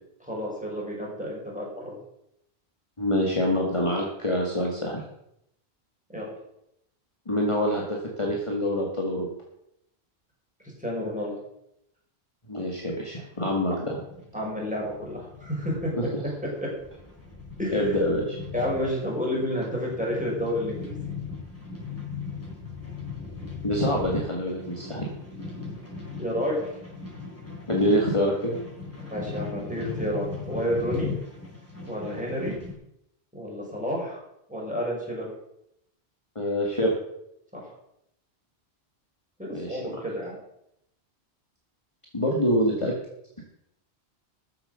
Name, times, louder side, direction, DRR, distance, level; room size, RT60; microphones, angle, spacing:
voice 1, 0.3-2.0 6.1-6.3 10.8-11.3 14.3-15.9 16.6-16.7 17.6-17.8 18.5-21.0 26.2-26.6 29.0-31.1 31.9-32.5 33.3-34.2 34.5-35.3 37.5-37.7 39.4-40.4, equal, 5° right, -4 dB, 5.7 m, -30 dB
voice 2, 3.0-5.0 7.3-9.3 12.5-14.0 16.0-16.2 17.7-18.4 23.6-25.1 27.7-28.6 36.4-37.0 39.5-39.8 42.1-42.9, equal, 30° left, -2 dB, 2.2 m, -25 dB
sound 1, 13.4-32.7, left 5 dB, 10° left, 5.1 m, -38 dB
14.0 x 7.8 x 6.7 m, 0.78 s
omnidirectional pair, 1.1 m